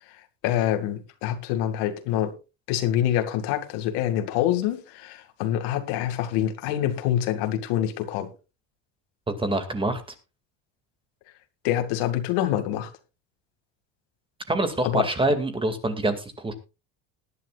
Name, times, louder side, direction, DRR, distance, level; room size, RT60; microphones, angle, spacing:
voice 1, 0.4-2.3 2.7-8.3 11.6-12.9 14.8-15.1, left 11 dB, 90° left, 2.4 m, -26 dB
voice 2, 9.3-10.0 14.5-16.5, right 2 dB, 15° right, 2.2 m, -25 dB
19.5 x 11.0 x 2.4 m
cardioid pair, 140°, 39 cm